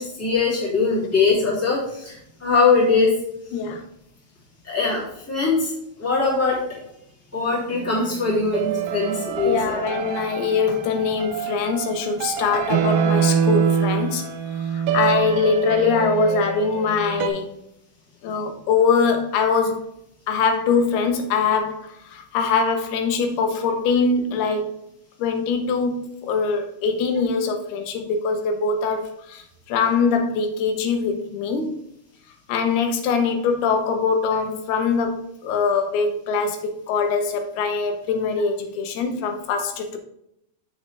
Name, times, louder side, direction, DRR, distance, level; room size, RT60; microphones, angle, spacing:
voice 1, 0.0-2.1 2.4-3.1 4.6-5.7 6.0-6.6 7.3-9.7, left 4 dB, 5° left, -7 dB, 2.0 m, -21 dB
voice 2, 3.5-3.8 9.4-14.3 14.7-17.5 18.2-19.8 20.3-24.8 25.2-31.7 32.5-40.0, left 5 dB, 85° left, 6 dB, 2.8 m, -23 dB
sound 1, 7.7-17.3, right 7 dB, 75° right, 2.1 m, -25 dB
7.0 x 6.4 x 3.3 m, 0.76 s
omnidirectional pair, 4.4 m